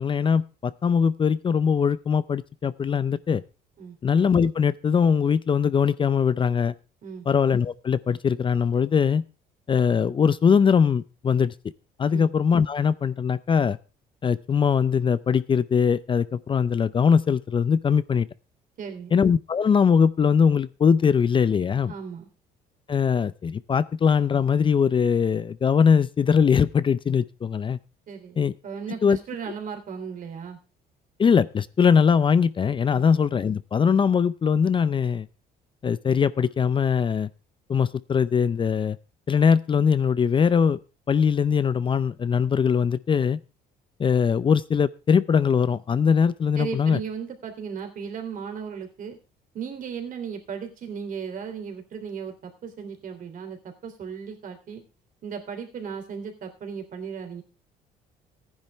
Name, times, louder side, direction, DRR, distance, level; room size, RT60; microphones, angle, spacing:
voice 1, 0.0-3.4 4.0-6.7 7.3-9.2 9.7-11.5 12.0-13.8 14.2-18.3 19.1-21.9 22.9-27.8 28.4-28.5 29.0-29.2 31.2-35.3 35.8-37.3 37.7-39.0 39.3-40.8 41.1-43.4 44.0-47.0, left 6 dB, 30° left, 16 dB, 0.5 m, -21 dB
voice 2, 18.8-19.1 21.9-22.3 28.1-28.4 28.6-30.6 32.9-33.1 46.6-49.2 49.5-54.8 55.2-57.4, right 6 dB, 55° right, 4 dB, 3.3 m, -36 dB
15.0 x 10.5 x 3.4 m, 0.30 s
cardioid pair, 110°, 17 cm